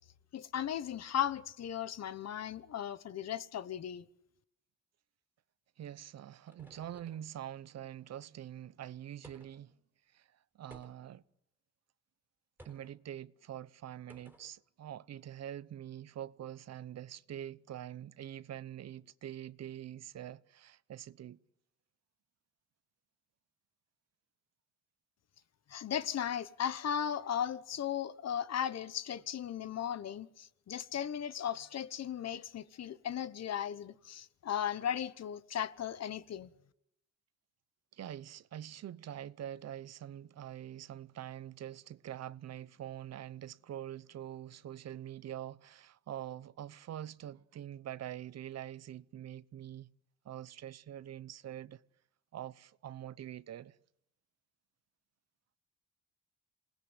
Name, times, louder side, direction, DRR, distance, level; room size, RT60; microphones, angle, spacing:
voice 1, 0.3-4.0 25.7-36.5, left 9 dB, 60° left, 1.2 m, -36 dB
sound 1, 5.8-7.4 9.2-9.7 10.7-11.2 12.6-13.0 14.1-14.5, right 1 dB, 5° right, 4.4 m, -58 dB
voice 2, 5.8-9.7 10.1-10.3 10.5-11.2 12.6-21.4 37.9-49.9 50.2-51.8 52.3-53.7, right 11 dB, 60° right, 0.8 m, -45 dB
27.5 x 19.5 x 8.1 m
cardioid pair, 90°, 30 cm